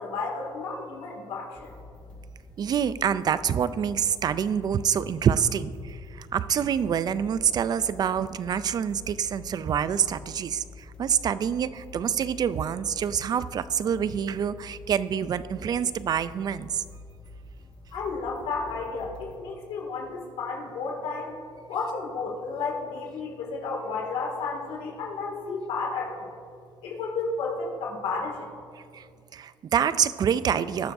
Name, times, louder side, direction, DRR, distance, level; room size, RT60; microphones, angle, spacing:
voice 1, 0.0-1.7 17.9-21.4 21.7-26.3 26.8-28.5, left 4 dB, 90° left, -1 dB, 2.2 m, -32 dB
sound 1, 1.5-19.4, left 2 dB, 10° left, 1.6 m, -47 dB
voice 2, 2.6-16.8 28.8-30.9, right 8 dB, 45° right, 16 dB, 0.4 m, -26 dB
20.0 x 6.9 x 2.6 m, 2.3 s
cardioid pair, 110°, 9 cm